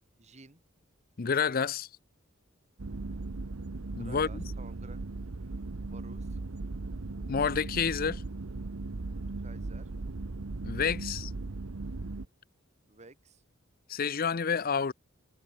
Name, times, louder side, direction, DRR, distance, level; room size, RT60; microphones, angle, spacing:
voice 1, 0.2-0.6 4.0-5.0 5.9-6.4 9.0-9.9 12.9-13.4, right 3 dB, 35° right, 1.4 m, -53 dB
voice 2, 1.2-1.9 4.0-4.4 7.3-8.2 10.6-11.3 13.9-14.9, left 6 dB, 45° left, 0.6 m, -29 dB
sound 1, 2.8-12.3, right 3 dB, 90° right, 0.9 m, -38 dB
head